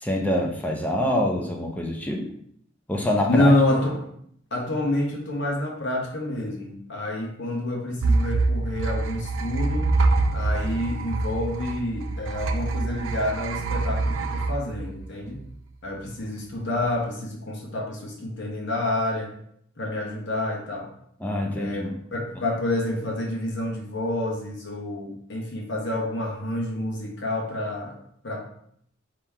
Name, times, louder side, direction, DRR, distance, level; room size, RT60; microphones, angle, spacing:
voice 1, 0.0-2.3 2.9-3.5 21.2-21.9, left 1 dB, 10° left, 0 dB, 0.5 m, -25 dB
voice 2, 3.3-4.0 4.5-9.9 10.3-15.4 15.8-19.3 19.8-20.9 21.5-28.0 28.2-28.4, left 1 dB, 60° left, 0 dB, 1.1 m, -28 dB
sound 1, 8.0-15.5, right 3 dB, 80° right, 0.4 m, -25 dB
4.4 x 2.9 x 3.6 m, 0.67 s
head